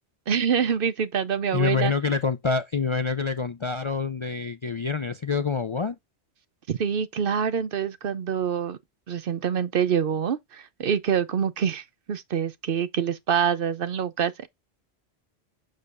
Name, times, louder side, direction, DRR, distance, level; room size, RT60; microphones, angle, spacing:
voice 1, 0.3-1.9 6.7-8.8 9.1-14.5, right 7 dB, 60° right, 0.8 m, -26 dB
voice 2, 1.5-6.0, left 5 dB, 40° left, 0.4 m, -26 dB
7.1 x 6.3 x 2.5 m
omnidirectional pair, 1.1 m